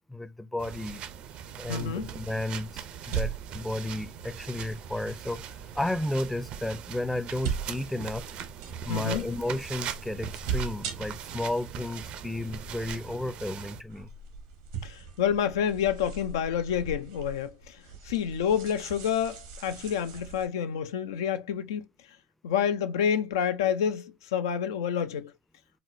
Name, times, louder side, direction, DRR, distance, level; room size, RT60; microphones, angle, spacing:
voice 1, 0.1-1.0 1.6-8.3 8.9-14.1, left 1 dB, 5° left, 0.4 m, -33 dB
sound 1, 0.6-13.8, right 9 dB, 60° right, 0.4 m, -41 dB
voice 2, 1.7-2.1 8.9-9.2 14.8-17.8 18.0-21.8 22.4-25.3, left 8 dB, 85° left, 0.3 m, -28 dB
sound 2, 1.7-20.5, right 6 dB, 85° right, 0.8 m, -40 dB
4.1 x 2.0 x 2.5 m
hypercardioid pair, 80°, 2 cm